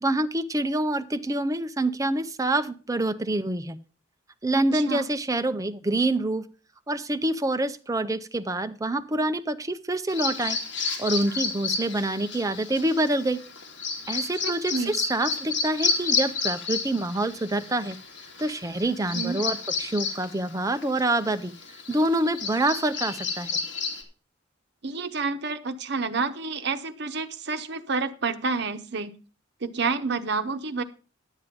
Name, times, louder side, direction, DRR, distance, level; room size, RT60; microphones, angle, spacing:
voice 1, 0.0-3.8 4.4-6.5 6.9-10.6 11.0-13.4 14.1-18.0 18.4-21.5 21.9-23.6, right 1 dB, 20° right, 10 dB, 0.6 m, -26 dB
voice 2, 4.6-5.0 14.4-15.0 19.1-19.4 24.8-29.1 29.6-30.8, right 4 dB, 60° right, 9 dB, 0.9 m, -29 dB
Bird vocalization bird call bird song, 10.1-24.0, left 5 dB, 70° left, 2.3 m, -31 dB
11.0 x 7.5 x 5.1 m, 0.36 s
head